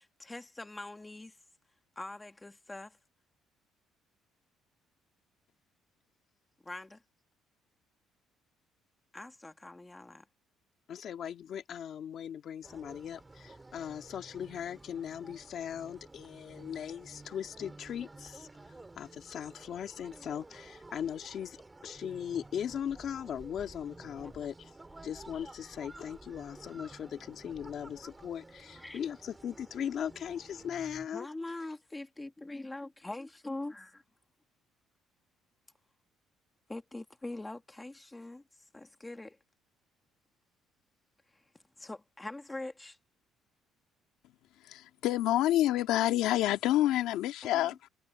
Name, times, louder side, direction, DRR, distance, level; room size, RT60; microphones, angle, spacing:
voice 1, 0.0-1.4 1.9-3.0 6.6-7.0 9.1-10.2 24.2-24.3 24.9-25.1 28.8-29.0 31.1-34.0 36.7-39.4 41.3-41.5 41.8-43.0 47.5-47.7, left 2 dB, 10° left, 1.6 m, -43 dB
voice 2, 10.9-18.5 19.0-21.6 21.8-24.7 25.0-31.3, left 9 dB, 45° left, 2.4 m, -39 dB
sound 1, 12.6-31.1, right 2 dB, 10° right, 1.8 m, -52 dB
voice 3, 44.6-47.9, left 14 dB, 80° left, 1.9 m, -27 dB
cardioid pair, 155°, 0 cm